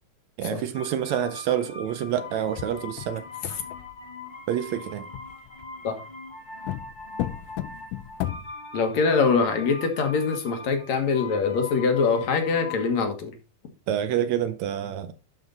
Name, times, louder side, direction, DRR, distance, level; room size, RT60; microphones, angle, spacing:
voice 1, 0.4-3.2 4.5-5.1 13.9-15.1, right 10 dB, 75° right, 1.9 m, -27 dB
sound 1, 0.7-12.9, left 3 dB, 50° left, 0.5 m, -41 dB
sound 2, 2.4-4.0 5.1-6.0 6.6-8.5, left 14 dB, 90° left, 2.2 m, -34 dB
voice 2, 8.7-13.3, left 5 dB, 65° left, 2.7 m, -23 dB
11.5 x 5.5 x 4.0 m
omnidirectional pair, 3.5 m